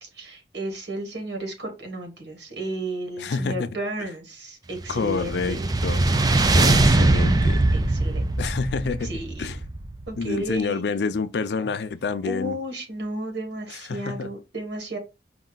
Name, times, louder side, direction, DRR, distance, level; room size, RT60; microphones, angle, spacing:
voice 1, 0.0-5.7 7.7-8.5 9.0-9.5 10.1-10.8 12.2-15.0, right 2 dB, 80° right, 1.5 m, -33 dB
voice 2, 3.2-3.7 4.9-6.1 6.5-7.7 8.4-9.6 10.2-12.6 13.9-14.3, left 4 dB, 70° left, 0.4 m, -28 dB
sound 1, 4.8-10.3, right 2 dB, 20° right, 0.4 m, -21 dB
5.3 x 2.3 x 3.9 m
head